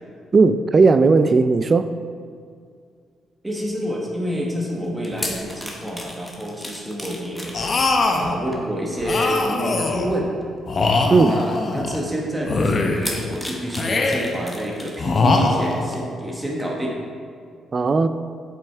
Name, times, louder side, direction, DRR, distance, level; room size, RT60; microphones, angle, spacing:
voice 1, 0.3-1.9 11.1-11.3 17.7-18.1, right 4 dB, 40° right, 11 dB, 0.4 m, -16 dB
voice 2, 3.4-7.6 8.1-10.3 11.3-17.0, equal, 15° right, -2 dB, 1.3 m, -28 dB
sound 1, 4.8-9.7 10.4-10.6 11.5-11.6 12.9-15.1 15.5-15.6, left 1 dB, 10° left, 1.4 m, -35 dB
sound 2, 7.5-8.3 9.0-10.1 10.7-12.0 12.4-13.2 13.7-14.4 15.0-16.0, left 3 dB, 45° left, 0.8 m, -22 dB
7.6 x 5.4 x 4.5 m, 2.2 s
supercardioid pair, 70°, 0 cm